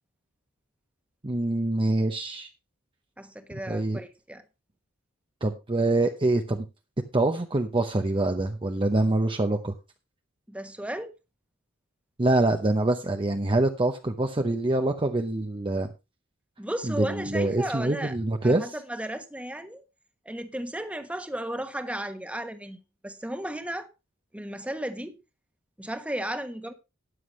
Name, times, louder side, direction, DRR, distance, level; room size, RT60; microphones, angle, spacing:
voice 1, 1.2-2.5 3.7-4.0 5.4-6.6 7.1-9.7 12.2-15.9 16.9-18.6, right 2 dB, 25° right, 0.8 m, -25 dB
voice 2, 3.2-4.4 10.5-11.1 16.6-18.2 18.4-19.8 20.2-22.8 23.0-23.9 24.3-25.2 25.8-26.7, right 1 dB, 5° right, 1.2 m, -34 dB
12.5 x 10.0 x 3.1 m
head